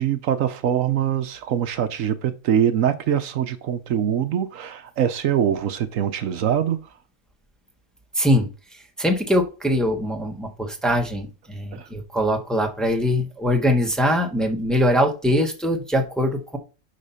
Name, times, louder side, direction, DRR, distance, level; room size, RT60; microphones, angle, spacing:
voice 1, 0.0-6.8 11.7-11.9, right 9 dB, 85° right, 1.2 m, -23 dB
voice 2, 8.1-8.5 9.0-16.6, equal, ahead, 1.1 m, -22 dB
8.4 x 3.8 x 5.6 m
omnidirectional pair, 1.3 m